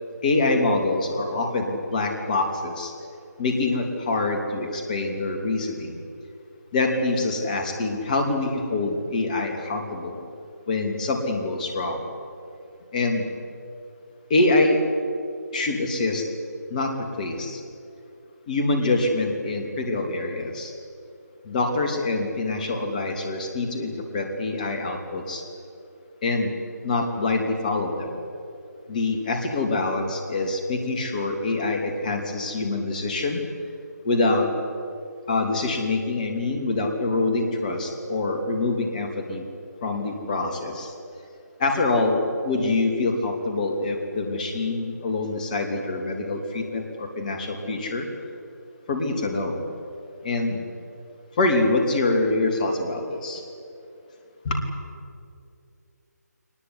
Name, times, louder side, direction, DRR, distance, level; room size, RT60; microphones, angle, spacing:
voice 1, 0.2-2.9 3.4-6.0 6.7-10.2 10.7-12.1 12.9-13.3 14.3-14.8 15.5-16.2 16.7-17.6 18.5-20.7 21.4-25.4 26.2-26.5 26.8-28.2 28.9-33.4 34.0-34.5 35.3-39.4 39.8-40.9 41.6-48.1 48.9-49.6 50.2-50.6 51.4-53.4 54.4-54.6, left 2 dB, 25° left, 4 dB, 3.0 m, -25 dB
21.5 x 20.0 x 9.8 m, 2.6 s
figure-of-eight pair, 150°, 10 cm